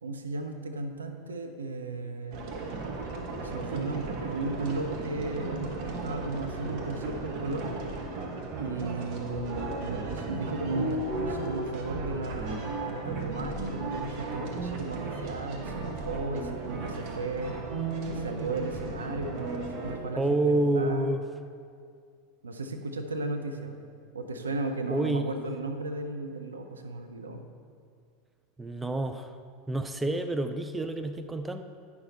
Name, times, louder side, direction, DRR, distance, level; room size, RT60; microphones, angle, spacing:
voice 1, 0.0-2.7 3.4-7.9 8.6-17.5 18.1-21.2 22.4-23.8 24.1-27.4, right 2 dB, 75° right, 5 dB, 0.6 m, -35 dB
sound 1, 2.3-20.0, right 3 dB, 50° right, 1.1 m, -35 dB
voice 2, 20.2-21.2 24.9-25.4 28.6-29.3 29.7-31.6, right 2 dB, 10° right, 8 dB, 0.4 m, -28 dB
9.6 x 5.9 x 4.2 m, 2.2 s
figure-of-eight pair, 80°, 0 cm